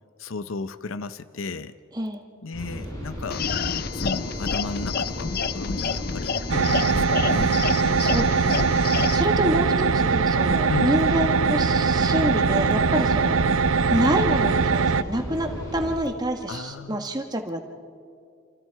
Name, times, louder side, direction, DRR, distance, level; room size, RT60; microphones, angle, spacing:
voice 1, 0.2-1.8 2.4-3.5 3.9-7.6 10.7-11.0 16.5-17.1, left 3 dB, 85° left, 12 dB, 0.7 m, -34 dB
sound 1, 2.5-16.0, equal, 20° left, 7.2 m, -35 dB
sound 2, 3.3-9.2, left 5 dB, 50° left, 0.6 m, -29 dB
sound 3, 6.5-15.0, right 5 dB, 85° right, 0.5 m, -21 dB
voice 2, 8.0-13.4 13.9-17.6, right 1 dB, 20° right, 4 dB, 1.5 m, -27 dB
28.5 x 27.5 x 4.7 m, 2.3 s
head